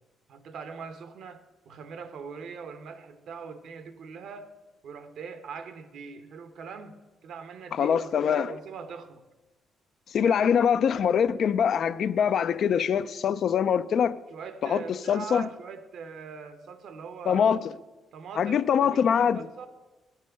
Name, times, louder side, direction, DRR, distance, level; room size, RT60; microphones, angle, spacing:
voice 1, 0.3-4.5 4.8-9.2 10.2-10.4 14.3-17.6 18.1-19.7, right 5 dB, 70° right, 0.8 m, -42 dB
voice 2, 7.7-8.5 10.1-14.2 14.6-15.4 17.3-17.6 18.4-19.5, left 7 dB, 60° left, 0.4 m, -23 dB
8.4 x 7.3 x 6.4 m
cardioid pair, 90°, 0 cm